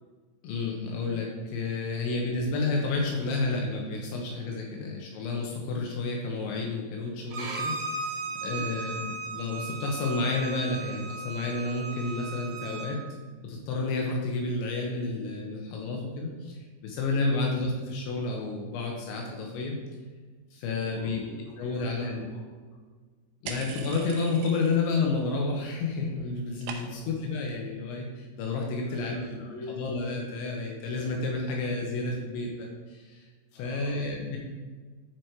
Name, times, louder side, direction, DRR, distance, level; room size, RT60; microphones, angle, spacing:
voice 1, 0.4-8.1 8.4-13.0 13.4-19.8 20.5-21.2 21.6-22.3 23.4-29.2 29.7-33.2 33.5-34.4, left 3 dB, 80° left, -1 dB, 3.3 m, -30 dB
Bowed string instrument, 7.3-12.9, right 3 dB, 65° right, 3.2 m, -36 dB
voice 2, 8.1-9.0 17.2-17.5 20.8-22.4 26.8-27.1 28.8-29.8 33.5-34.1, left 2 dB, 50° left, -4 dB, 2.9 m, -45 dB
sound 1, 23.5-25.1 25.3-25.9 26.1-27.2, right 6 dB, 80° right, 2.9 m, -42 dB
11.0 x 4.8 x 4.6 m, 1.4 s
omnidirectional pair, 5.4 m